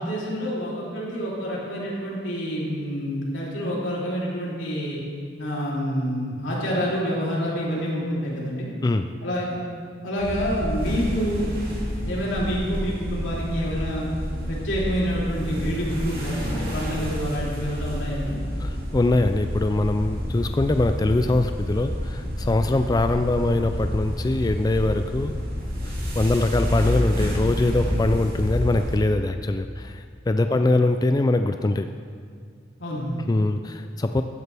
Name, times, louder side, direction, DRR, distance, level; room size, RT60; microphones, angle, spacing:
voice 1, 0.0-5.0 5.4-8.7 9.2-9.6 10.0-11.5 12.0-14.0 14.5-18.3 30.5-30.6 32.8-33.2, equal, 85° left, -5 dB, 3.3 m, -27 dB
sound 1, 10.2-29.0, equal, 50° right, 2.8 m, -29 dB
voice 2, 18.6-25.3 26.2-31.9 33.3-34.2, left 2 dB, 20° left, 7 dB, 0.3 m, -22 dB
15.0 x 11.0 x 3.4 m, 2.1 s
head